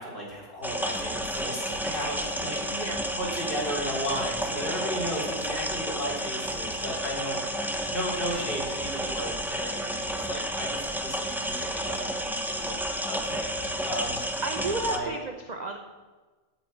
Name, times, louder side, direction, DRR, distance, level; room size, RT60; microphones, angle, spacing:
voice 1, 0.0-2.9 3.1-7.4 7.9-14.2 14.9-15.1, equal, 35° left, -4 dB, 3.7 m, -35 dB
sound 1, 0.6-15.0, equal, ahead, 0.6 m, -31 dB
voice 2, 2.7-3.0 14.4-15.8, right 2 dB, 40° right, 4 dB, 0.7 m, -32 dB
9.3 x 7.9 x 7.8 m, 1.3 s
omnidirectional pair, 1.6 m